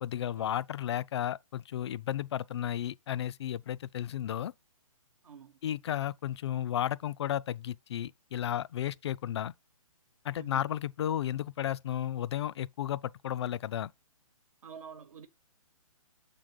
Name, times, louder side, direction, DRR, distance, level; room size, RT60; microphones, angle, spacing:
voice 1, 0.0-4.5 5.6-9.5 10.2-13.9, left 11 dB, 50° left, 0.4 m, -33 dB
voice 2, 5.2-5.6 10.3-10.6 14.6-15.3, right 6 dB, 75° right, 1.1 m, -48 dB
7.1 x 3.8 x 4.9 m
hypercardioid pair, 150°, 18 cm